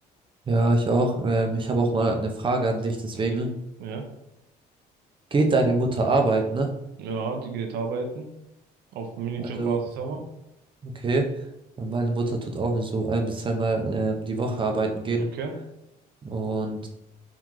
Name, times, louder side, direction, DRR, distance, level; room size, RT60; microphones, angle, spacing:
voice 1, 0.5-3.5 5.3-6.7 9.4-9.9 10.8-11.3 11.8-15.3 16.2-16.9, right 2 dB, 30° right, 3 dB, 0.7 m, -24 dB
voice 2, 7.0-8.3 8.9-10.2 15.2-15.5, right 5 dB, 80° right, 4 dB, 0.8 m, -32 dB
3.7 x 3.5 x 3.1 m, 0.87 s
cardioid pair, 110°, 17 cm